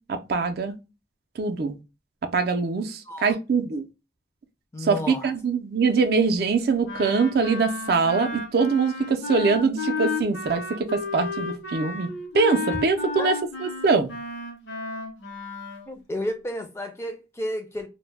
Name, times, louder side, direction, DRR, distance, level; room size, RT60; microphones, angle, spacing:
voice 1, 0.1-0.7 1.4-1.7 2.3-3.8 4.8-5.0 5.2-12.1 12.3-13.3 13.8-14.1, right 4 dB, 55° right, 0.4 m, -23 dB
voice 2, 3.1-3.4 4.7-5.3 12.7-12.8 13.2-13.3 15.9-17.9, left 1 dB, 15° left, 0.4 m, -32 dB
Wind instrument woodwind instrument, 6.8-15.9, left 3 dB, 80° left, 0.7 m, -33 dB
2.1 x 2.1 x 3.1 m
head